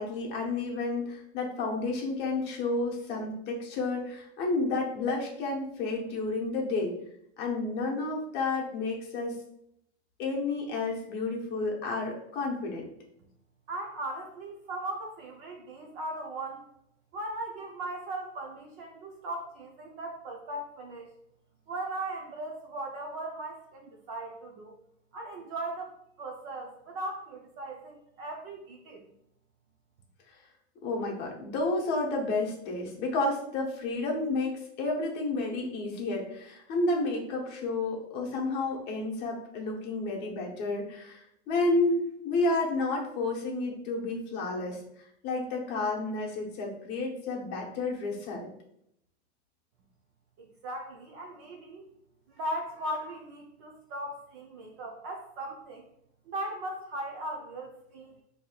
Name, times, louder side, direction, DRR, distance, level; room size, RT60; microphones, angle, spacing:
voice 1, 0.0-7.0 7.4-9.4 10.2-12.9 30.8-44.8 45.2-48.5, left 2 dB, 30° left, -1 dB, 0.8 m, -31 dB
voice 2, 13.7-16.7 17.1-21.1 21.7-24.8 25.1-29.0 50.4-51.8 52.3-55.8 56.3-58.1, right 1 dB, 30° right, 0 dB, 0.4 m, -38 dB
4.7 x 2.8 x 2.3 m, 0.75 s
supercardioid pair, 150°, 34 cm